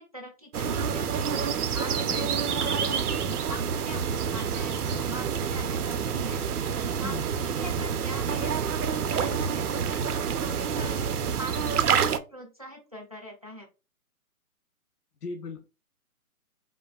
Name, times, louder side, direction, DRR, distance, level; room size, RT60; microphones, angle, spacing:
voice 1, 0.0-13.7, equal, 25° right, 1 dB, 0.5 m, -43 dB
sound 1, 0.5-12.2, right 7 dB, 90° right, 0.6 m, -28 dB
voice 2, 15.2-15.7, left 4 dB, 90° left, 5 dB, 0.8 m, -37 dB
5.3 x 2.5 x 2.3 m, 0.31 s
hypercardioid pair, 175°, 45 cm